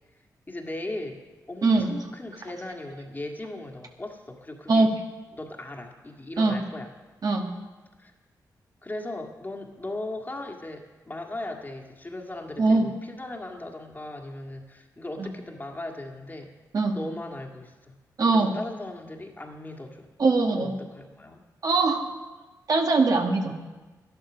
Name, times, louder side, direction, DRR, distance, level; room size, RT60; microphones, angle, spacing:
voice 1, 0.5-4.9 5.3-6.9 8.0-8.1 8.8-16.5 16.9-17.9 18.3-20.1 20.5-21.4, left 1 dB, 25° left, 2 dB, 1.9 m, -38 dB
voice 2, 18.2-18.5 20.2-20.7 21.6-22.0 22.7-23.5, right 3 dB, 55° right, 2 dB, 1.6 m, -21 dB
11.5 x 11.0 x 6.2 m, 1.2 s
cardioid pair, 65°, 7 cm